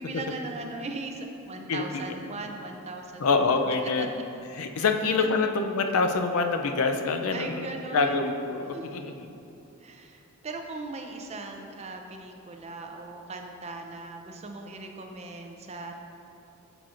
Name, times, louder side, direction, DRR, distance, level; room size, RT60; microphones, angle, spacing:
voice 1, 0.0-3.3 4.0-4.1 4.8-5.4 7.3-8.4 8.7-9.0 9.8-16.0, right 3 dB, 30° right, 3 dB, 0.5 m, -39 dB
voice 2, 3.2-4.1 4.6-7.7 7.9-9.3, left 4 dB, 75° left, 6 dB, 0.5 m, -25 dB
8.9 x 5.9 x 2.5 m, 2.7 s
head